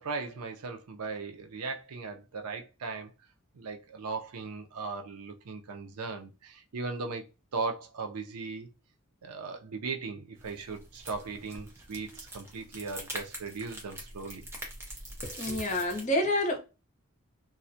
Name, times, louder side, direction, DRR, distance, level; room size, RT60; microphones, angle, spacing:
voice 1, 0.0-3.1 3.5-7.2 7.5-8.7 9.2-14.5, right 4 dB, 85° right, 0.5 m, -38 dB
sound 1, 10.4-16.0, right 1 dB, 10° right, 0.5 m, -44 dB
voice 2, 15.2-16.6, left 1 dB, 35° left, 0.6 m, -28 dB
2.3 x 2.1 x 2.6 m
head